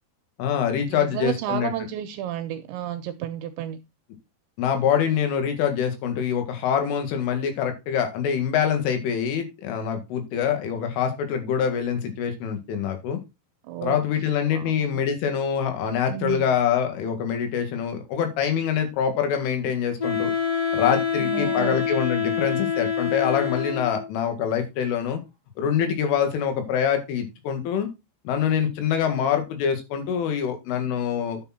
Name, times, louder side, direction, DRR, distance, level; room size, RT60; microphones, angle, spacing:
voice 1, 0.4-1.7 4.6-13.2 13.8-20.3 20.7-25.2 25.6-27.9 28.3-31.4, left 8 dB, 75° left, 6 dB, 4.4 m, -25 dB
voice 2, 0.9-3.8 13.7-14.0 14.5-14.9 16.1-16.5 21.2-21.8, right 10 dB, 80° right, 9 dB, 2.8 m, -31 dB
Wind instrument woodwind instrument, 20.0-24.1, left 7 dB, 35° left, 3.1 m, -26 dB
10.0 x 7.0 x 4.3 m, 0.25 s
omnidirectional pair, 5.7 m